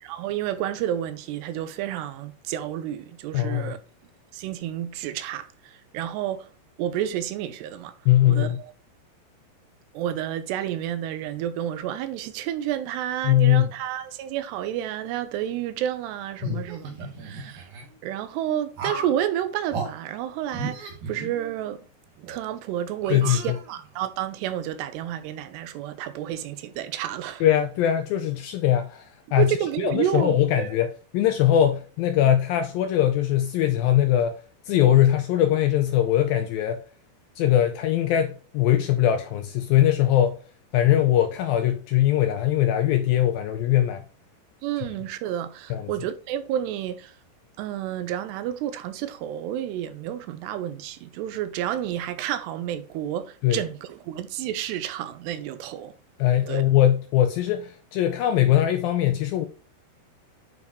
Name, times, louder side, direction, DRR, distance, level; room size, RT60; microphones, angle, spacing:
voice 1, 0.0-3.8 4.3-6.5 6.8-7.9 8.3-8.5 9.9-16.9 17.2-17.7 18.0-21.8 22.2-27.4 29.4-30.7 44.6-47.2 47.6-55.9 56.5-56.6, right 11 dB, 85° right, 2.9 m, -30 dB
voice 2, 3.3-3.7 8.1-8.6 13.2-13.7 16.4-16.6 23.1-23.6 27.4-29.1 29.3-34.4 34.7-36.8 37.4-40.4 40.7-44.0 45.7-45.9 53.4-53.6 56.2-59.5, left 12 dB, 85° left, 2.1 m, -21 dB
sound 1, 16.4-17.8 18.8-19.2 19.7-19.9 20.5-21.8 22.2-22.4 23.0-24.0, right 4 dB, 60° right, 4.1 m, -35 dB
9.4 x 5.4 x 3.1 m
omnidirectional pair, 4.8 m